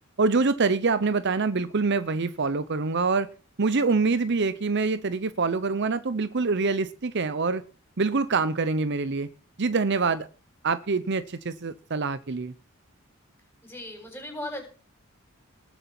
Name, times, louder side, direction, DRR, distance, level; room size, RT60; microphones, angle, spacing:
voice 1, 0.2-3.3 3.6-7.6 8.0-9.3 9.6-10.3 10.6-12.5, right 4 dB, 55° right, 0.8 m, -25 dB
voice 2, 13.6-14.7, left 1 dB, 10° left, 7.6 m, -37 dB
19.5 x 7.2 x 6.0 m
head